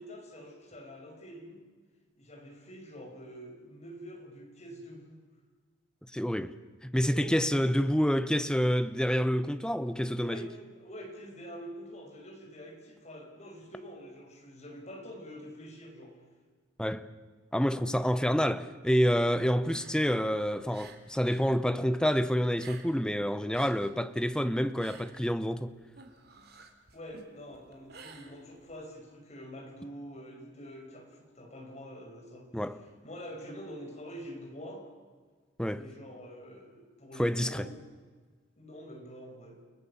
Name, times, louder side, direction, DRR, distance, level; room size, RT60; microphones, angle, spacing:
voice 1, 0.0-1.6 2.2-5.2 7.2-7.6 10.2-16.2 26.9-32.5 33.0-34.9 35.7-37.7 38.6-39.6, equal, 35° left, 5.7 m, -46 dB
voice 2, 6.1-6.5 6.8-10.5 16.8-17.1 17.5-25.7 32.5-32.8 35.6-35.8 37.2-37.7, equal, 5° left, 0.9 m, -28 dB
sound 1, 19.6-21.5 21.8-23.1 23.4-28.8, right 4 dB, 55° right, 2.9 m, -53 dB
30.0 x 19.0 x 7.2 m
head